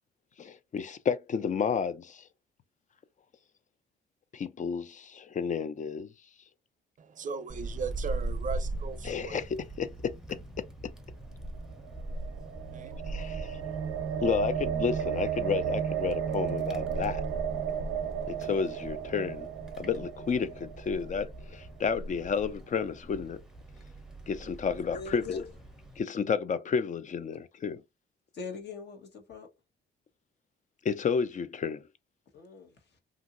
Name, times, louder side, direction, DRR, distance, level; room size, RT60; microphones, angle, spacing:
voice 1, 0.4-2.2 4.3-6.1 9.0-10.7 13.1-13.6 14.2-17.2 18.3-19.5 19.8-23.4 24.3-25.4 26.0-27.8 30.8-31.8, left 6 dB, 40° left, 0.5 m, -31 dB
voice 2, 7.0-9.4 12.7-12.9, right 4 dB, 40° right, 0.5 m, -37 dB
Wind, 7.5-26.0, right 2 dB, 5° right, 0.7 m, -41 dB
sound 1, 11.5-21.6, right 9 dB, 90° right, 0.5 m, -34 dB
sound 2, 12.6-15.3 15.6-18.0, right 1 dB, 85° left, 1.8 m, -51 dB
voice 3, 24.7-25.5 28.3-29.5 32.3-33.0, left 5 dB, 60° left, 1.1 m, -42 dB
2.9 x 2.6 x 2.5 m
cardioid pair, 90°, 20 cm